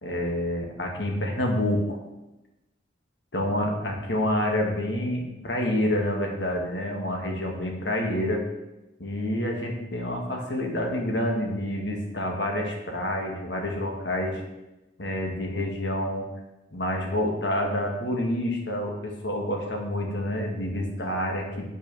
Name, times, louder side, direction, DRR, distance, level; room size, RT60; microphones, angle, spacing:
voice 1, 0.0-2.0 3.3-8.4 9.0-14.4 15.0-16.3 16.7-21.7, left 1 dB, 70° left, 1 dB, 2.1 m, -28 dB
8.7 x 6.5 x 7.1 m, 0.99 s
head